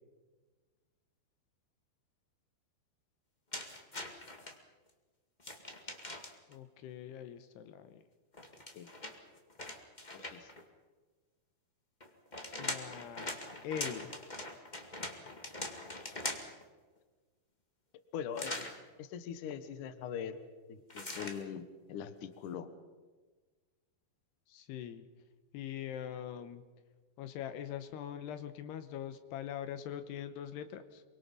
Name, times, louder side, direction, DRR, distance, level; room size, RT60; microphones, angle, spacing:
sound 1, 3.5-4.5 5.4-6.5 8.3-10.6 12.0-16.6 18.3-18.8 20.9-21.4, left 2 dB, 45° left, 0.5 m, -42 dB
voice 1, 6.5-8.0 12.6-13.4 13.6-14.1 24.5-25.1 25.5-26.6 27.2-31.0, left 9 dB, 75° left, 11 dB, 3.0 m, -42 dB
voice 2, 10.1-10.5 18.1-18.7 19.0-20.4 20.7-22.7, left 8 dB, 60° left, 10 dB, 2.3 m, -42 dB
27.0 x 23.5 x 5.5 m, 1.3 s
omnidirectional pair, 4.9 m